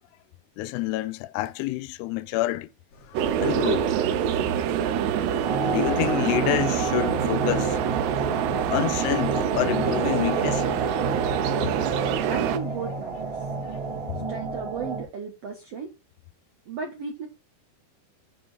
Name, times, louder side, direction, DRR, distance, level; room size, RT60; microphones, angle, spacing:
voice 1, 0.6-2.7 3.1-4.0 4.8-5.0 5.6-7.8 8.7-10.7, left 16 dB, 85° left, 2.6 m, -28 dB
sound 1, 2.9-14.2, left 3 dB, 60° left, 4.3 m, -51 dB
sound 2, 3.2-12.6, right 8 dB, 90° right, 3.0 m, -25 dB
sound 3, 5.4-15.0, right 3 dB, 40° right, 2.5 m, -31 dB
voice 2, 12.3-13.4 14.3-15.9 16.7-17.3, right 5 dB, 70° right, 1.5 m, -35 dB
9.3 x 4.8 x 4.8 m
omnidirectional pair, 4.7 m